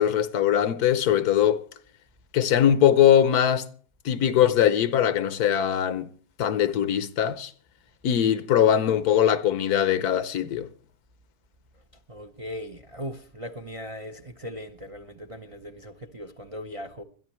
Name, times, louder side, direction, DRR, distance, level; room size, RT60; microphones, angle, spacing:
voice 1, 0.0-1.6 2.3-3.7 4.0-6.1 6.4-7.5 8.0-10.7, left 10 dB, 70° left, 1.3 m, -21 dB
voice 2, 12.1-17.0, equal, 30° right, 0.7 m, -38 dB
21.5 x 13.0 x 3.1 m
omnidirectional pair, 1.7 m